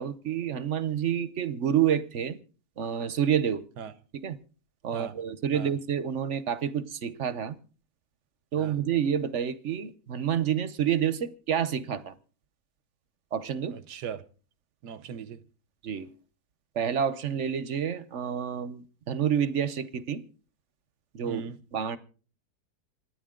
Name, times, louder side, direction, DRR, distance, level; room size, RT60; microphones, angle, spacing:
voice 1, 0.0-2.4 2.8-3.6 4.1-4.4 4.8-7.5 8.5-12.1 13.3-13.8 15.8-16.1 16.7-20.2 21.1-21.4 21.7-22.0, right 8 dB, 55° right, 1.1 m, -28 dB
voice 2, 13.7-14.2 14.8-15.4 21.2-21.6, right 7 dB, 90° right, 1.5 m, -39 dB
27.5 x 9.8 x 3.7 m
omnidirectional pair, 1.7 m